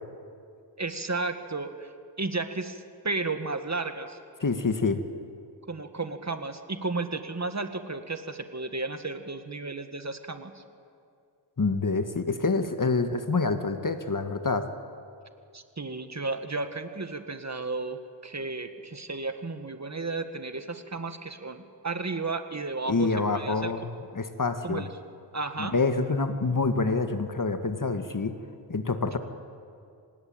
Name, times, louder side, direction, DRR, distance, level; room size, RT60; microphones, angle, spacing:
voice 1, 0.8-1.9 2.2-4.2 5.7-10.6 15.5-23.7 24.6-24.9 25.3-25.8, right 3 dB, 40° right, 8 dB, 1.9 m, -33 dB
voice 2, 4.4-5.0 11.6-14.7 22.9-24.8 25.6-28.4 28.7-29.2, left 3 dB, 45° left, 8 dB, 1.8 m, -27 dB
26.0 x 19.5 x 8.9 m, 2.4 s
wide cardioid pair, 60°, 43 cm